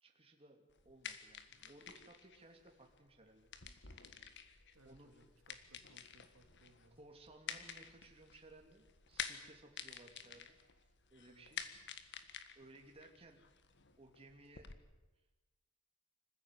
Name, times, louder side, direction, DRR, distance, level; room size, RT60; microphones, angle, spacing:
voice 1, 0.0-3.5 4.8-5.1 7.0-11.6 12.5-13.4 14.0-14.7, right 2 dB, 30° right, 2 dB, 3.0 m, -60 dB
sound 1, 0.7-14.7, left 8 dB, 60° left, 1.6 m, -50 dB
voice 2, 4.7-7.0 11.3-11.5, right 1 dB, 85° right, 5 dB, 2.6 m, -66 dB
26.0 x 15.0 x 9.4 m, 1.1 s
head